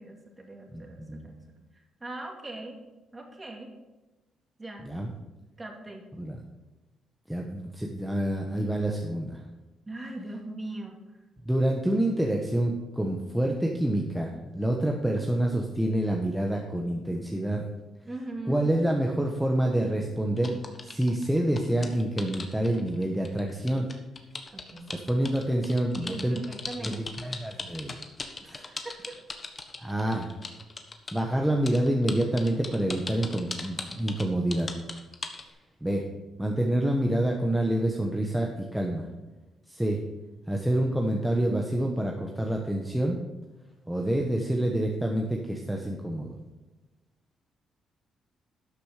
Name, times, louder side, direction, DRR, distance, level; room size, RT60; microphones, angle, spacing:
voice 1, 0.0-2.8 3.1-3.7 4.6-4.8 5.6-6.0 9.9-11.0 18.1-18.6 24.5-24.9 26.0-27.1 28.4-29.2, right 2 dB, 20° right, 2 dB, 2.3 m, -40 dB
voice 2, 0.7-1.3 4.8-5.1 6.2-6.4 7.3-9.4 11.4-17.7 18.5-20.6 20.8-23.8 24.9-26.4 26.8-26.9 27.2-28.0 29.8-30.3 31.1-34.7 35.8-36.0 36.4-39.1 39.7-40.0 40.5-43.2 43.9-46.4, right 1 dB, 5° right, 0 dB, 1.2 m, -27 dB
sound 1, 20.4-31.2 31.7-35.5, left 3 dB, 30° left, 1.3 m, -39 dB
12.0 x 6.7 x 5.0 m, 1.1 s
cardioid pair, 90°, 0 cm